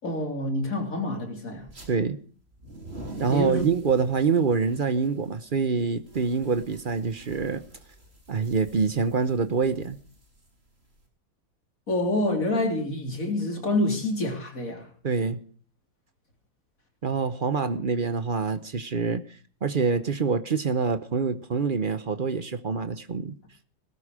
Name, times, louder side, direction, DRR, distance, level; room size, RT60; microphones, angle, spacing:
voice 1, 0.0-1.7 3.3-3.6 11.9-14.9, left 1 dB, 45° left, 3.8 m, -27 dB
sound 1, 1.6-1.9 2.5-11.0, right 1 dB, 30° right, 3.8 m, -44 dB
voice 2, 1.9-2.2 3.2-7.6 8.3-10.0 15.0-15.4 17.0-19.2 19.6-23.4, right 5 dB, 55° right, 0.5 m, -26 dB
18.5 x 13.0 x 4.9 m
omnidirectional pair, 2.1 m